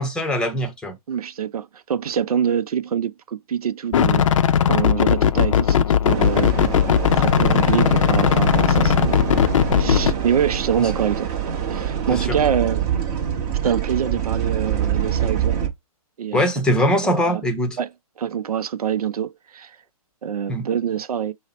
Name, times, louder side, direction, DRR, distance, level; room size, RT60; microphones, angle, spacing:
voice 1, 0.0-1.0 12.1-12.4 16.3-17.8 20.5-20.6, equal, 5° left, 0.8 m, -22 dB
voice 2, 1.1-4.3 4.7-6.6 7.1-9.4 9.7-11.3 11.7-12.8 13.6-15.6 16.2-16.5 17.0-17.4 17.8-17.9 18.2-19.8 20.2-21.3, right 8 dB, 75° right, 0.5 m, -25 dB
sound 1, 3.9-10.1, left 9 dB, 55° left, 0.5 m, -18 dB
sound 2, 6.1-15.7, right 9 dB, 30° right, 1.1 m, -25 dB
5.5 x 2.1 x 4.0 m
hypercardioid pair, 140°, 19 cm